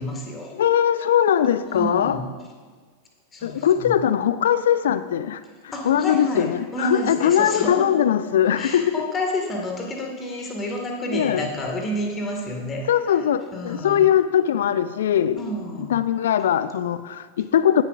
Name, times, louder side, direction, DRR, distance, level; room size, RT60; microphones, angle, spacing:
voice 1, 0.0-0.5 1.6-2.3 3.3-4.0 5.7-7.9 8.6-13.2 13.5-14.1 15.4-16.0, left 1 dB, 20° left, 2.2 m, -30 dB
voice 2, 0.6-2.2 3.4-5.4 5.8-8.9 11.1-11.4 12.9-15.4 15.9-17.8, left 9 dB, 60° left, 0.5 m, -20 dB
16.5 x 10.5 x 2.6 m
figure-of-eight pair, 90°, 0 cm